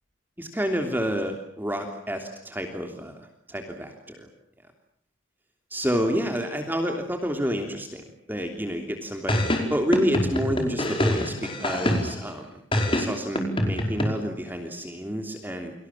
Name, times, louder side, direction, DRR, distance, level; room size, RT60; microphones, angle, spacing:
voice 1, 0.4-4.3 5.7-12.6 12.9-15.7, equal, 10° right, 4 dB, 3.2 m, -29 dB
sound 1, 9.3-12.3 12.7-14.1, left 1 dB, 25° left, 5.1 m, -25 dB
30.0 x 25.5 x 7.4 m, 0.64 s
head